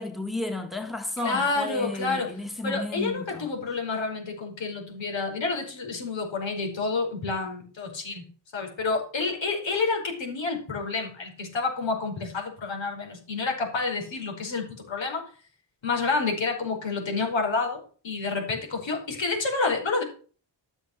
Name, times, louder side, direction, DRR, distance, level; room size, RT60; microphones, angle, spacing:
voice 1, 0.0-3.5, left 2 dB, ahead, 1.7 m, -33 dB
voice 2, 1.2-2.3 2.6-8.2 8.5-15.2 15.8-20.0, left 4 dB, 80° left, 5.0 m, -29 dB
13.0 x 7.2 x 6.5 m
wide cardioid pair, 150°, 45 cm